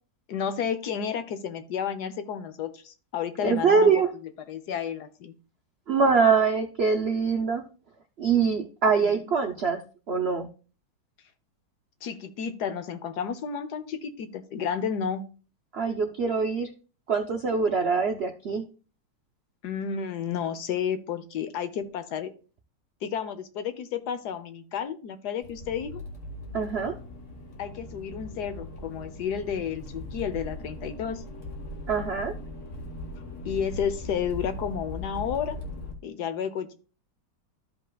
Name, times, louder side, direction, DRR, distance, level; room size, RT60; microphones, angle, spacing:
voice 1, 0.3-3.9 4.5-5.3 9.0-9.1 12.0-15.2 19.6-22.3 23.0-26.0 27.6-31.2 33.4-35.6 36.0-36.7, left 7 dB, 70° left, 10 dB, 1.3 m, -31 dB
voice 2, 3.4-4.1 5.9-7.6 8.2-9.8 10.1-10.5 15.7-16.7 17.1-18.6 26.5-26.9 31.9-32.3, right 5 dB, 65° right, 4 dB, 0.6 m, -23 dB
Accelerating revving vroom, 25.4-35.9, left 1 dB, 45° left, 1.5 m, -39 dB
13.5 x 5.3 x 2.3 m, 0.36 s
omnidirectional pair, 1.9 m